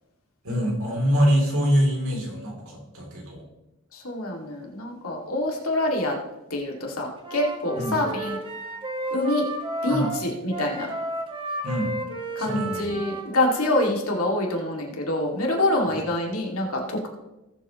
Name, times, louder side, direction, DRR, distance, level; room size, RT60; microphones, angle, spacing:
voice 1, 0.4-3.4 7.8-8.0 9.9-10.1 11.6-11.9 12.4-12.9, equal, 65° right, 0 dB, 3.0 m, -24 dB
voice 2, 3.9-6.2 6.5-8.4 9.1-9.5 9.8-10.9 12.4-17.1, left 1 dB, 70° left, 0 dB, 2.2 m, -26 dB
Wind instrument woodwind instrument, 7.2-13.8, right 1 dB, 25° right, 1.4 m, -33 dB
19.0 x 7.5 x 3.0 m, 0.97 s
head